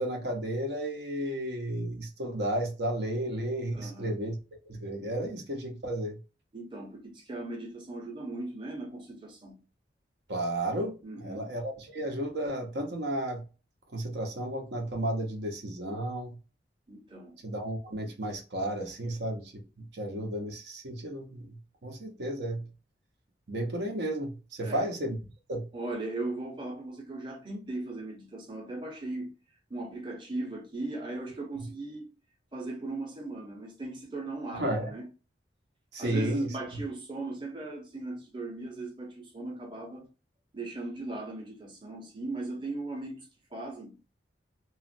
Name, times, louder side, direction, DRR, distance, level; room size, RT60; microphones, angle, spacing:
voice 1, 0.0-4.4 4.7-6.2 10.3-13.4 13.9-16.4 17.4-22.7 23.5-25.2 25.5-25.7 34.5-34.9 35.9-36.5, right 1 dB, 70° right, 0.8 m, -33 dB
voice 2, 3.7-4.1 6.5-9.6 11.0-11.4 16.9-17.4 24.6-24.9 25.7-29.3 29.7-32.1 32.5-35.1 36.0-40.1 40.5-43.3 43.5-44.0, right 2 dB, 25° right, 0.8 m, -38 dB
3.0 x 2.4 x 2.5 m
head